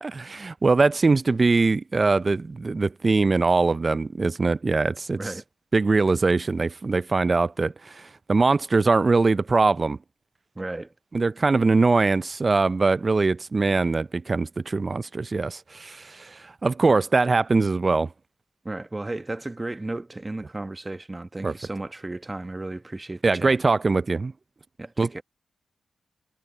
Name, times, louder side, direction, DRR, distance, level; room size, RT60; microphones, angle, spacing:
voice 1, 0.0-5.2 5.7-10.0 11.1-18.1 21.4-21.5 23.2-24.3 25.0-25.1, right 3 dB, 40° right, 0.5 m, -22 dB
voice 2, 10.5-10.9 18.6-23.6 24.8-25.2, right 2 dB, 25° right, 1.2 m, -34 dB
cardioid pair, 55°, 0 cm